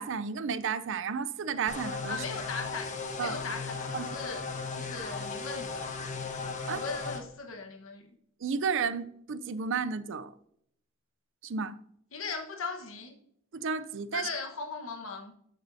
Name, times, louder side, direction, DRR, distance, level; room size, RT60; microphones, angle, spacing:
voice 1, 0.0-2.2 3.2-3.4 3.9-4.1 6.7-6.8 8.4-10.3 11.4-11.8 13.5-14.3, right 5 dB, 65° right, 0.5 m, -32 dB
sound 1, 1.7-7.2, left 4 dB, 35° left, 1.1 m, -36 dB
voice 2, 2.1-2.9 3.2-4.4 4.7-6.0 6.7-8.0 12.1-13.1 14.1-15.3, left 4 dB, 70° left, 1.2 m, -38 dB
13.5 x 6.7 x 2.7 m
head